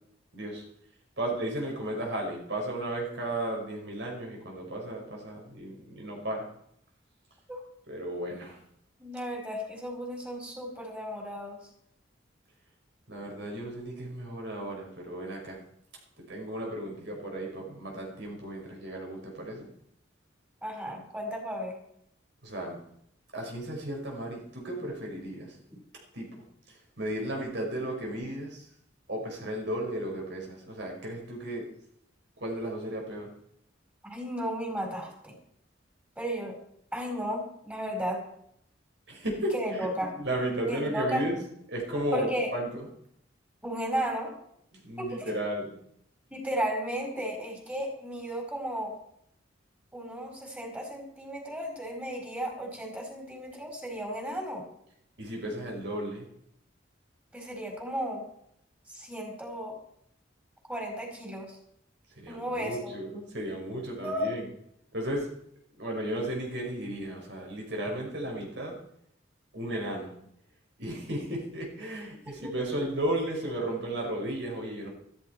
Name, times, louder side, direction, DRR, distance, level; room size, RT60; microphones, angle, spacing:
voice 1, 0.3-0.6 1.2-6.5 7.9-8.6 13.1-15.6 16.2-19.7 22.4-22.8 23.3-25.6 26.1-26.3 26.7-28.7 29.1-31.7 32.4-33.3 39.1-39.9 40.1-41.4 41.7-42.9 44.7-45.8 55.2-56.3 62.2-64.5 64.9-65.3 65.8-68.8 69.5-70.2 70.8-74.9, right 1 dB, 65° right, 0 dB, 5.7 m, -34 dB
voice 2, 9.0-11.6 20.6-21.8 25.7-25.8 34.0-35.3 36.2-36.6 36.9-38.2 39.5-40.1 40.7-41.2 42.1-42.5 43.6-44.3 45.0-45.3 46.3-48.9 49.9-54.6 57.3-58.2 58.9-59.7 60.7-61.6 62.3-62.9 64.0-64.3 72.2-72.5, equal, 10° right, 0 dB, 4.9 m, -34 dB
14.5 x 14.5 x 4.7 m, 0.70 s
head